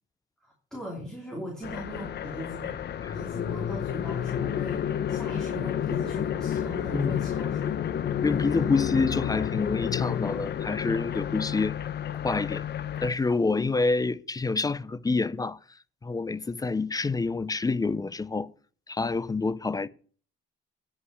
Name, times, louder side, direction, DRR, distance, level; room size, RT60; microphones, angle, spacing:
voice 1, 0.4-2.7 3.1-7.7, equal, 5° left, 2.9 m, -39 dB
sound 1, 1.6-13.1, left 9 dB, 60° left, 0.8 m, -30 dB
voice 2, 8.2-11.8 12.2-12.6 13.0-15.6 16.0-18.5 18.9-19.9, left 3 dB, 20° left, 0.5 m, -27 dB
9.7 x 5.6 x 6.2 m
cardioid pair, 90°, 20 cm